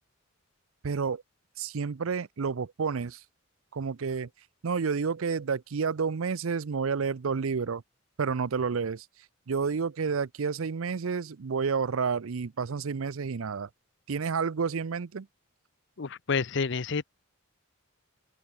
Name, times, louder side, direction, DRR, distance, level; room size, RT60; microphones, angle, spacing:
voice 1, 0.8-1.2 1.6-3.2 3.7-4.3 4.6-7.8 8.2-9.1 9.5-13.7 14.1-15.3, right 5 dB, 80° right, 0.6 m, -30 dB
voice 2, 16.0-17.1, left 5 dB, 60° left, 0.7 m, -29 dB
open air
head